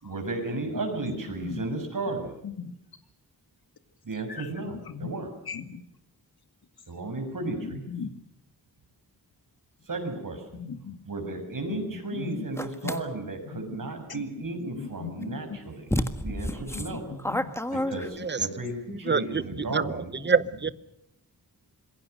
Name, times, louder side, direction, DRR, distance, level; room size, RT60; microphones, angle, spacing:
voice 1, 0.0-2.3 4.0-5.3 6.9-7.8 9.9-10.6 11.1-15.9 16.2-17.0 17.7-20.1, right 2 dB, 55° right, 6.4 m, -34 dB
voice 2, 5.5-5.8 7.9-8.1 10.6-11.0 11.7-11.8 12.2-12.5 12.8-12.9 13.5-13.6 14.1-14.2 14.7-15.4 16.7-17.4, left 6 dB, 70° left, 2.0 m, -37 dB
sound 1, 12.6-13.0 15.2-15.3 15.9-18.4, left 1 dB, 5° left, 1.5 m, -30 dB
voice 3, 19.1-19.4 19.7-20.7, right 5 dB, 30° right, 0.9 m, -26 dB
26.5 x 22.5 x 6.6 m
wide cardioid pair, 125°, 39 cm